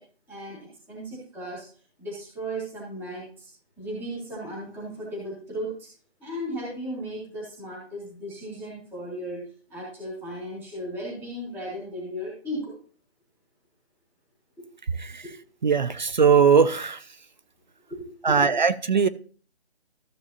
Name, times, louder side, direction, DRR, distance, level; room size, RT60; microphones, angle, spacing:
voice 1, 0.3-1.6 2.0-3.5 3.8-5.9 6.2-12.8 15.2-15.3 17.9-18.6, equal, ahead, -13 dB, 0.6 m, -36 dB
voice 2, 15.6-17.0 18.2-19.1, right 6 dB, 45° right, 14 dB, 0.4 m, -19 dB
13.5 x 6.7 x 2.7 m, 0.42 s
figure-of-eight pair, 160°, 32 cm